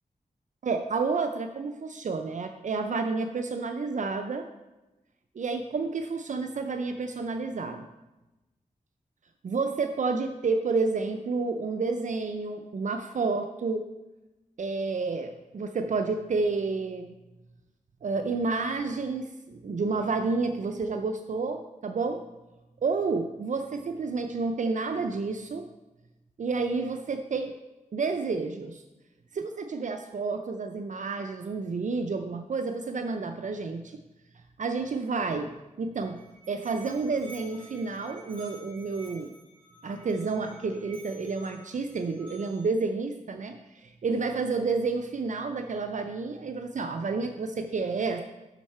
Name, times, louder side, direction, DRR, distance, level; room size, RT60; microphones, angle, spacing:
voice 1, 0.6-4.5 5.4-7.9 9.4-13.9 14.6-17.1 18.0-22.2 22.8-25.7 26.4-27.5 27.9-28.8 29.3-34.0 34.6-35.5 35.8-36.2 36.5-39.3 39.8-48.2, right 4 dB, 60° right, 6 dB, 0.5 m, -30 dB
Musical instrument, 35.8-42.8, right 2 dB, 35° right, 2.5 m, -52 dB
8.1 x 6.4 x 4.3 m, 1.0 s
wide cardioid pair, 75°, 14 cm